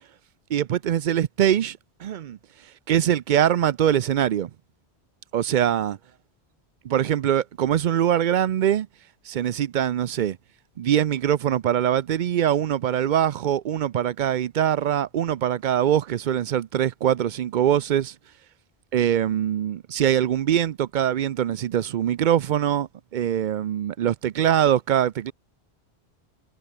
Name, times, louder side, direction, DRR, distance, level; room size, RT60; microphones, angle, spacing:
voice 1, 0.5-2.4 2.9-4.5 5.3-6.0 6.8-8.9 9.3-10.4 10.8-18.1 18.9-25.3, right 10 dB, 55° right, 0.6 m, -23 dB
omnidirectional pair, 1.1 m